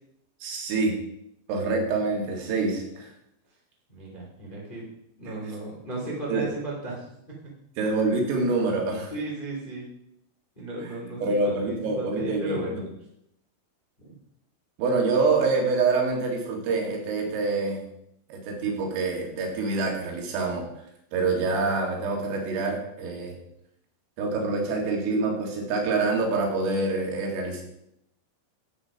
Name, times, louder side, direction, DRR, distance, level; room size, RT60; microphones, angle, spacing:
voice 1, 0.4-1.0 1.5-3.1 6.3-6.5 7.8-9.1 11.2-12.6 14.8-17.8 18.3-20.7 21.1-23.4 24.2-27.6, right 3 dB, 85° right, 0 dB, 4.9 m, -26 dB
voice 2, 3.9-4.9 5.2-7.4 9.1-9.9 10.5-12.8 14.0-14.1, right 2 dB, 20° left, -3 dB, 1.5 m, -35 dB
12.5 x 8.0 x 5.1 m, 0.77 s
omnidirectional pair, 5.8 m